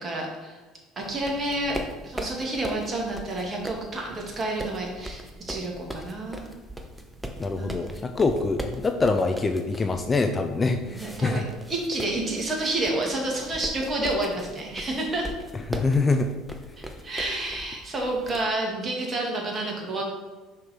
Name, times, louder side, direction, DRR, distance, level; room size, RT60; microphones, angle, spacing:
voice 1, 0.0-0.6 1.0-1.8 2.0-6.5 7.6-7.8 10.9-11.4 11.7-15.3 17.0-20.0, right 2 dB, 30° right, -1 dB, 2.2 m, -29 dB
sound 1, 1.0-18.4, equal, 5° right, 0.9 m, -40 dB
voice 2, 7.4-11.4 15.7-16.3, left 3 dB, 25° left, 7 dB, 0.5 m, -24 dB
5.8 x 5.1 x 4.4 m, 1.3 s
figure-of-eight pair, 60°, 0 cm